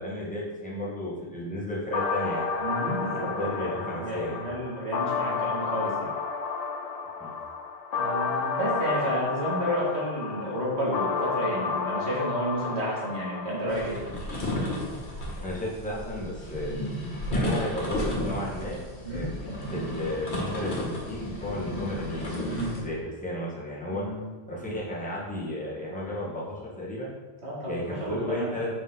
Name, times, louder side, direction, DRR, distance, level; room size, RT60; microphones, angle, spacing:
voice 1, 0.0-2.5 3.2-4.4 7.2-7.3 15.4-16.7 17.3-18.8 19.1-22.3 22.8-24.0 24.5-27.1 27.7-28.7, left 1 dB, 5° left, -6 dB, 1.4 m, -33 dB
sound 1, 1.9-13.9, left 4 dB, 50° left, 0.5 m, -31 dB
voice 2, 2.6-6.1 8.0-14.0 19.0-19.3 22.5-22.8 23.9-24.3 27.4-28.7, equal, 70° right, -6 dB, 2.2 m, -31 dB
sound 2, 13.7-22.8, left 1 dB, 75° left, 1.6 m, -33 dB
5.6 x 5.2 x 3.7 m, 1.3 s
omnidirectional pair, 1.1 m